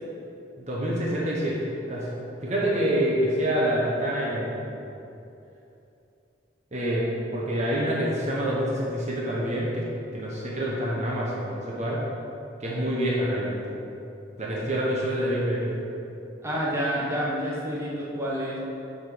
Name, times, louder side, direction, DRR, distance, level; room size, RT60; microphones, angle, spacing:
voice 1, 0.6-2.1 2.4-4.7 6.7-12.0 12.6-13.6 14.4-15.8, equal, 35° right, -5 dB, 1.3 m, -27 dB
voice 2, 16.4-18.6, equal, 15° right, -7 dB, 1.3 m, -28 dB
8.0 x 5.3 x 5.2 m, 2.8 s
head